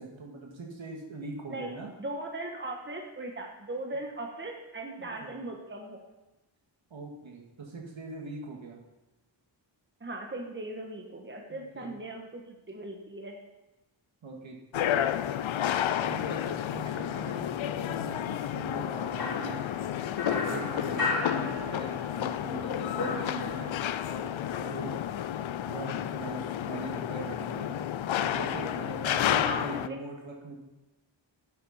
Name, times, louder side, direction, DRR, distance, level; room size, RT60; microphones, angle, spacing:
voice 1, 0.0-1.9 5.0-5.3 6.9-8.8 11.5-11.9 14.2-15.0 15.7-19.6 20.2-23.8 24.0-25.0 25.7-27.8 28.3-30.5, right 3 dB, 80° right, 0 dB, 2.1 m, -41 dB
voice 2, 2.0-6.0 10.0-13.4 29.4-30.0, right 2 dB, 25° right, 2 dB, 1.4 m, -38 dB
sound 1, 14.7-29.9, left 10 dB, 80° left, 0.6 m, -31 dB
sound 2, 19.2-22.2 22.5-24.0, left 3 dB, 50° left, 2.6 m, -35 dB
11.5 x 8.2 x 4.3 m, 1.1 s
wide cardioid pair, 110°, 46 cm